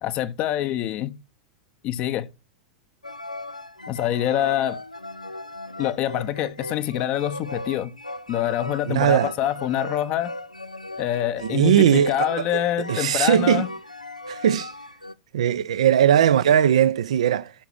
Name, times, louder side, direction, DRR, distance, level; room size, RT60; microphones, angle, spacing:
voice 1, 0.0-1.1 1.8-2.3 3.9-4.8 5.8-7.9 8.3-10.3 11.0-13.7, left 12 dB, 35° left, 0.8 m, -25 dB
sound 1, 3.0-15.1, left 1 dB, 85° left, 0.5 m, -37 dB
voice 2, 8.9-9.3 11.5-13.7 14.3-14.7 15.3-17.5, right 10 dB, 60° right, 0.6 m, -19 dB
11.5 x 6.0 x 6.2 m
figure-of-eight pair, 90°, 4 cm